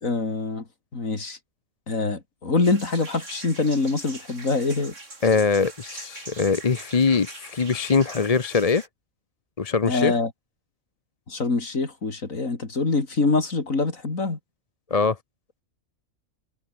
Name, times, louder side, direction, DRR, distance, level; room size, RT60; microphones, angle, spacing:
voice 1, 0.0-1.4 1.9-4.9 9.9-10.3 11.3-14.4, left 3 dB, 90° left, 3.8 m, -25 dB
sound 1, 2.6-8.9, right 3 dB, 65° right, 4.1 m, -42 dB
voice 2, 5.2-8.9 9.6-10.1 14.9-15.2, left 5 dB, 30° left, 0.9 m, -22 dB
omnidirectional pair, 1.4 m